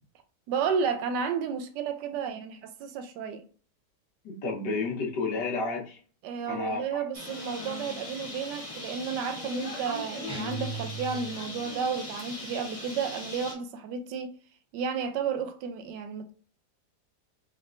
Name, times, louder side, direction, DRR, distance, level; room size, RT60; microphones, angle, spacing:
voice 1, 0.5-3.4 6.2-14.3 14.7-16.3, right 6 dB, 85° right, 1.2 m, -32 dB
voice 2, 4.2-6.0 6.5-7.0, left 3 dB, 80° left, 1.7 m, -31 dB
Bird, 7.1-13.5, left 2 dB, 25° left, 0.8 m, -40 dB
sound 1, 10.3-11.6, right 2 dB, 5° right, 0.6 m, -37 dB
4.1 x 3.3 x 2.5 m
omnidirectional pair, 1.8 m